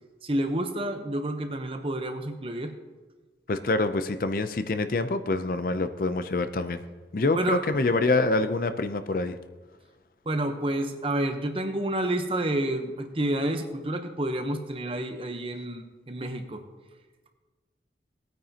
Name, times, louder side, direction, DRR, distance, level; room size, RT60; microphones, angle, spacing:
voice 1, 0.2-2.7 7.3-7.6 10.3-16.6, right 1 dB, 30° right, 6 dB, 0.9 m, -29 dB
voice 2, 3.5-6.8 7.1-9.4, left 2 dB, 50° left, 10 dB, 0.5 m, -26 dB
18.5 x 9.2 x 2.9 m, 1.3 s
head